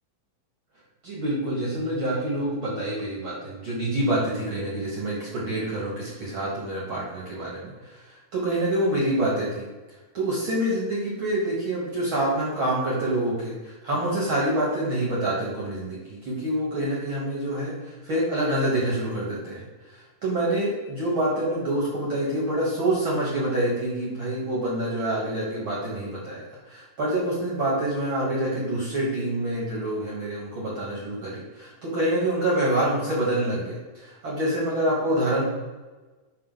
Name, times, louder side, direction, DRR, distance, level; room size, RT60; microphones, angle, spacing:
voice 1, 1.0-9.7 10.1-35.4, right 1 dB, 50° right, -6 dB, 1.7 m, -27 dB
5.5 x 5.1 x 4.0 m, 1.2 s
omnidirectional pair, 3.9 m